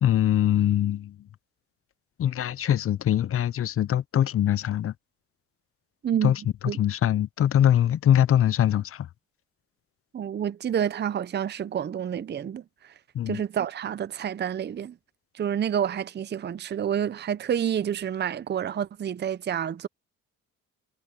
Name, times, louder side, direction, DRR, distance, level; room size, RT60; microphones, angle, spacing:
voice 1, 0.0-1.2 2.2-4.9 6.2-9.1 13.1-13.4, left 11 dB, 50° left, 0.6 m, -23 dB
voice 2, 10.1-12.9 13.3-14.9 15.3-19.9, right 9 dB, 35° right, 0.6 m, -29 dB
cardioid pair, 90°, 30 cm